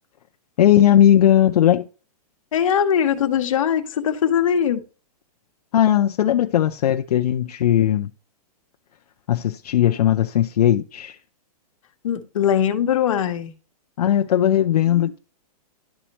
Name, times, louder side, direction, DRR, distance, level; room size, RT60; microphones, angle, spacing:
voice 1, 0.6-1.9 5.7-8.1 9.3-11.2 14.0-15.2, left 11 dB, 75° left, 0.6 m, -18 dB
voice 2, 2.5-4.8 12.0-13.5 14.9-15.1, left 8 dB, 55° left, 1.2 m, -21 dB
11.5 x 4.3 x 2.9 m
hypercardioid pair, 180°, 20 cm